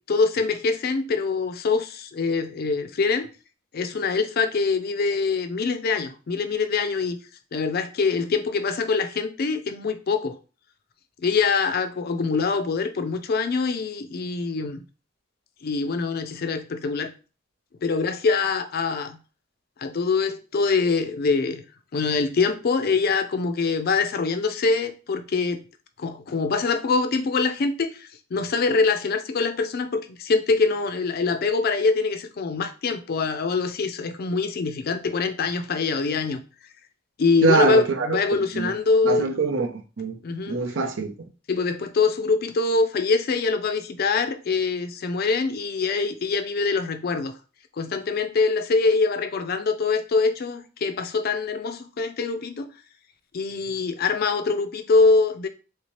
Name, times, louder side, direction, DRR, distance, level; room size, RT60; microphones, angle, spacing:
voice 1, 0.1-3.3 3.7-7.2 7.5-10.4 11.2-14.8 15.6-17.1 17.8-19.2 19.8-21.6 21.9-25.6 26.0-36.4 37.2-39.3 40.2-40.6 41.5-47.3 47.8-52.7 53.3-55.5, left 4 dB, 50° left, 0.4 m, -24 dB
voice 2, 37.4-38.2 38.5-38.7 39.0-40.2 40.5-41.3, right 4 dB, 75° right, 0.6 m, -24 dB
3.2 x 2.8 x 3.0 m
head